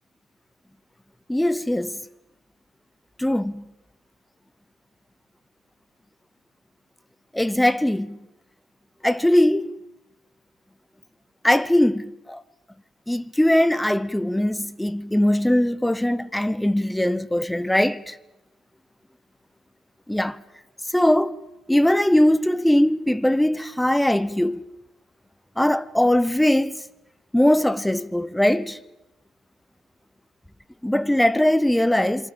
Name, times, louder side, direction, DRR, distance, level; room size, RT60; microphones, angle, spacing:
voice 1, 1.3-2.0 3.2-3.6 7.3-8.2 9.0-9.7 11.4-12.4 13.1-18.2 20.1-20.4 20.9-21.3 21.7-24.6 25.6-26.8 27.3-28.8 30.8-32.3, left 1 dB, 5° left, 1.0 m, -20 dB
26.5 x 24.5 x 7.3 m
figure-of-eight pair, 50°, 0 cm